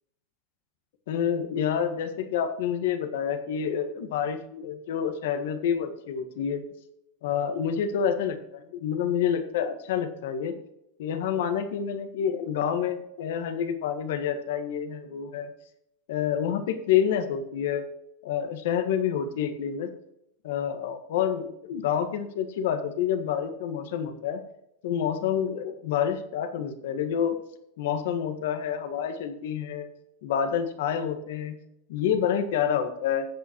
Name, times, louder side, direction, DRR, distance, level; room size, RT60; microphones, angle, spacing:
voice 1, 1.1-6.6 7.2-10.5 11.0-15.5 16.1-17.8 18.2-19.9 20.4-24.4 24.8-27.3 27.8-29.9 30.2-31.6 31.9-33.3, left 8 dB, 75° left, 8 dB, 1.6 m, -28 dB
14.5 x 8.3 x 3.1 m, 0.82 s
hypercardioid pair, 110°, 0 cm